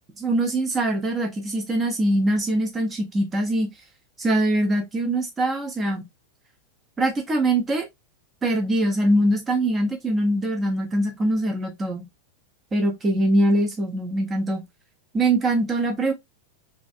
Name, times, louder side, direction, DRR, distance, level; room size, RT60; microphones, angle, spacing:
voice 1, 0.2-3.7 4.2-6.0 7.0-7.9 8.4-12.0 12.7-14.6 15.1-16.1, right 1 dB, 20° right, 1.0 m, -23 dB
3.1 x 2.7 x 2.5 m
figure-of-eight pair, 90°, 0 cm